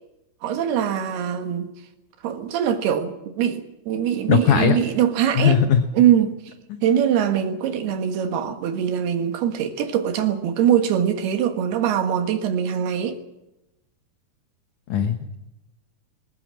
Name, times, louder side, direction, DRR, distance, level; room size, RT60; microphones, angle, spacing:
voice 1, 0.4-1.7 2.2-5.6 5.9-6.5 6.8-13.2, right 9 dB, 75° right, 3.5 m, -22 dB
voice 2, 4.3-4.8 5.4-5.8 6.7-6.8 14.9-15.3, left 8 dB, 65° left, 2.1 m, -19 dB
21.0 x 18.0 x 7.6 m
omnidirectional pair, 4.7 m